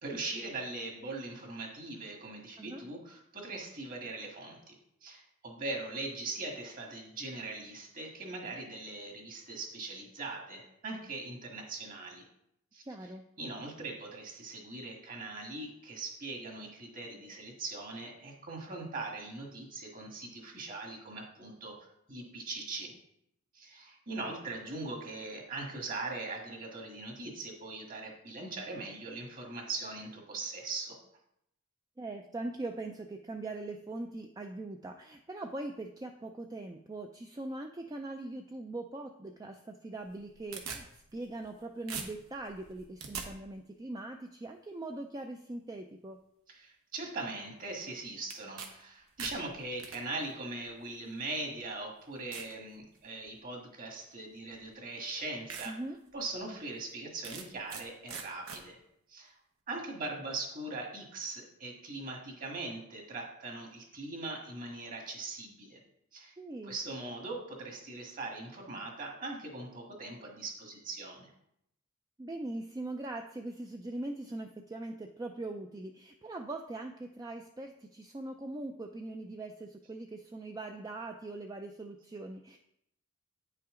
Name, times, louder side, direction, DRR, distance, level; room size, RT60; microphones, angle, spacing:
voice 1, 0.0-12.3 12.7-12.8 13.4-22.9 23.5-31.0 46.5-55.7 56.1-58.8 59.1-59.4 59.7-65.8 66.1-66.3 66.6-71.3, right 3 dB, 40° right, 1 dB, 1.7 m, -41 dB
voice 2, 12.8-13.2 32.0-46.2 55.6-56.0 66.4-66.8 72.2-82.6, right 2 dB, 15° right, 4 dB, 0.3 m, -41 dB
sound 1, 40.0-41.6 41.9-43.3 48.3-48.7 49.0-50.0 50.9-51.0 51.6-51.7 52.3-52.5 53.0-53.4 54.5-54.6 55.1-55.2 55.5-55.7 56.1-56.2 57.2-57.8 58.1-58.6, right 6 dB, 85° right, 1.0 m, -42 dB
9.1 x 5.7 x 3.7 m, 0.77 s
head